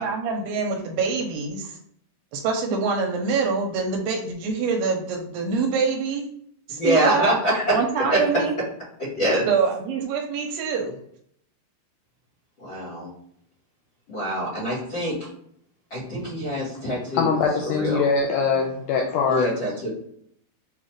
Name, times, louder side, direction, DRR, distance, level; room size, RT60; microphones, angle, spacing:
voice 1, 0.0-1.8 2.3-6.3 6.7-7.3 7.7-8.6 9.5-11.0, right 5 dB, 80° right, 2 dB, 2.6 m, -25 dB
voice 2, 6.8-7.8 8.1-8.2 9.2-9.4 12.6-13.1 14.1-15.1 15.9-18.0 19.3-19.9, right 1 dB, 50° left, -7 dB, 1.4 m, -24 dB
voice 3, 17.2-19.5, left 5 dB, 80° left, 0 dB, 2.1 m, -22 dB
6.8 x 2.4 x 3.2 m, 0.68 s
omnidirectional pair, 4.8 m